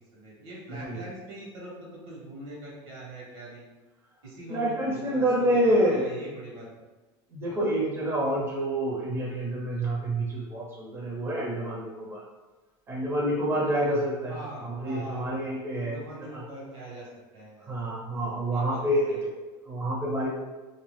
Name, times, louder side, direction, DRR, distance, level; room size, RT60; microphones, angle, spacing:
voice 1, 0.0-3.6 4.2-5.2 5.5-6.8 14.3-15.4 15.8-17.7 18.5-18.8 19.1-19.2, right 1 dB, 80° right, -4 dB, 1.3 m, -42 dB
voice 2, 4.5-6.2 7.3-12.2 12.9-16.0 16.3-16.4 17.7-20.3, right 1 dB, 20° right, -5 dB, 0.8 m, -28 dB
2.6 x 2.3 x 3.3 m, 1.2 s
supercardioid pair, 130°, 12 cm